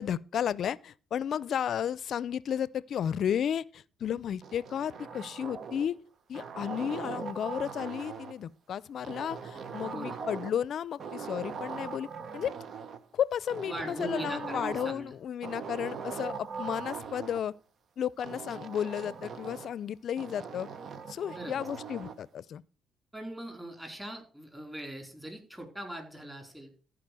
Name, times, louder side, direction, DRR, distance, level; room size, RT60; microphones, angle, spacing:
voice 1, 0.0-6.0 6.3-12.1 12.3-12.5 13.1-17.5 18.0-20.7 21.1-22.6, left 9 dB, 65° left, 0.5 m, -33 dB
sound 1, 4.4-6.0 6.3-8.4 9.0-10.7 11.0-13.0 13.5-15.1 15.4-17.4 18.2-19.8 20.2-22.2, right 6 dB, 55° right, 1.0 m, -41 dB
voice 2, 13.7-15.1 21.3-21.5 23.1-26.7, right 1 dB, 10° right, 4.3 m, -40 dB
14.0 x 5.1 x 6.2 m
supercardioid pair, 75°, 0 cm